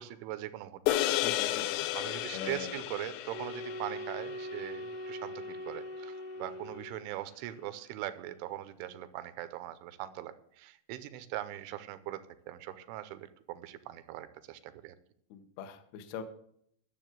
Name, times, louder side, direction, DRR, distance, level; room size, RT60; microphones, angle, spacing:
voice 1, 0.0-1.1 1.6-15.0, right 13 dB, 80° right, 12 dB, 3.0 m, -41 dB
sound 1, 0.9-5.4, left 15 dB, 90° left, 2.5 m, -33 dB
voice 2, 1.2-2.0 2.3-2.7 15.3-16.2, left 7 dB, 75° left, 7 dB, 2.5 m, -42 dB
sound 2, 3.3-7.2, left 1 dB, 25° right, 0.7 m, -41 dB
12.0 x 7.1 x 7.7 m, 0.68 s
omnidirectional pair, 5.8 m